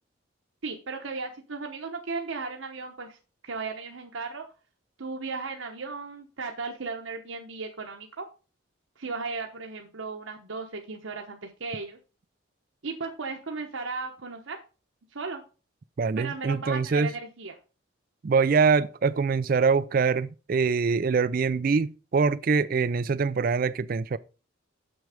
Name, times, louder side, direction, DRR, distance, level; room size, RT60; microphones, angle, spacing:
voice 1, 0.6-3.2 3.4-4.4 5.0-8.3 9.0-12.0 12.8-14.6 15.1-15.4 16.2-17.5, right 4 dB, 75° right, 1.0 m, -35 dB
voice 2, 16.0-17.1 18.2-24.2, right 5 dB, 45° right, 0.3 m, -24 dB
7.2 x 6.3 x 5.0 m
head